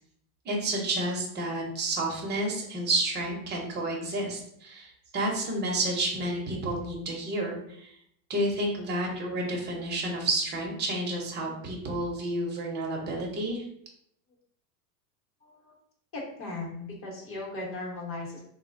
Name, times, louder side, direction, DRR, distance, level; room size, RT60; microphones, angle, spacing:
voice 1, 0.4-7.9 8.3-13.6, right 1 dB, 20° right, 0 dB, 0.6 m, -30 dB
voice 2, 15.4-15.7 16.1-18.4, left 2 dB, 25° left, -3 dB, 0.9 m, -37 dB
3.5 x 2.1 x 2.5 m, 0.70 s
supercardioid pair, 120°, 49 cm